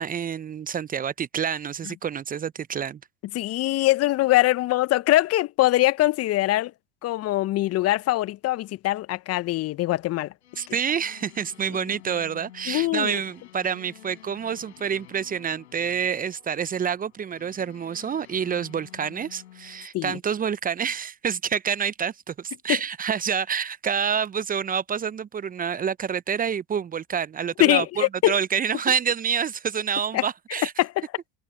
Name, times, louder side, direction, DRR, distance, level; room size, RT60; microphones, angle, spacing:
voice 1, 0.0-3.0 10.6-30.7, right 7 dB, 25° right, 0.9 m, -28 dB
voice 2, 3.3-6.7 7.0-10.3 10.7-10.8 12.7-13.2 19.9-20.2 27.6-28.4 30.1-30.2 30.8-31.0, left 17 dB, 45° left, 1.2 m, -22 dB
sound 1, 10.4-19.9, left 13 dB, 75° left, 4.7 m, -50 dB
hypercardioid pair, 75°, 34 cm